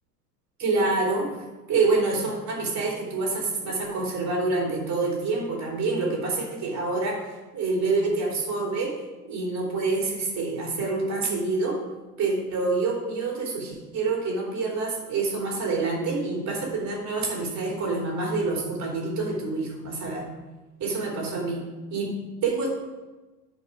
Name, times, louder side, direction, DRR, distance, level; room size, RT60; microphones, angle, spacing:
voice 1, 0.6-1.4 1.7-8.9 9.3-11.8 12.2-20.3 20.8-21.6 21.9-22.7, right 3 dB, 35° right, -2 dB, 3.4 m, -27 dB
11.0 x 5.5 x 4.9 m, 1.2 s
figure-of-eight pair, 80°, 48 cm